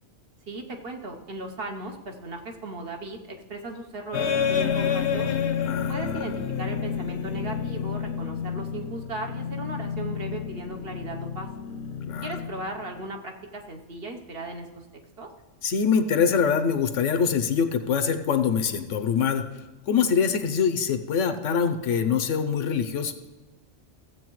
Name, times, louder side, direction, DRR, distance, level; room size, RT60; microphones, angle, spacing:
voice 1, 0.5-5.3 5.9-11.5 12.2-14.8 15.2-15.3, right 2 dB, 55° right, 3 dB, 1.1 m, -37 dB
sound 1, 4.1-13.0, left 7 dB, 65° left, 1.0 m, -29 dB
voice 2, 5.6-6.4 12.1-12.3 15.6-19.4 19.9-23.1, left 6 dB, 80° left, 8 dB, 1.1 m, -24 dB
15.5 x 7.7 x 3.1 m, 1.2 s
omnidirectional pair, 1.3 m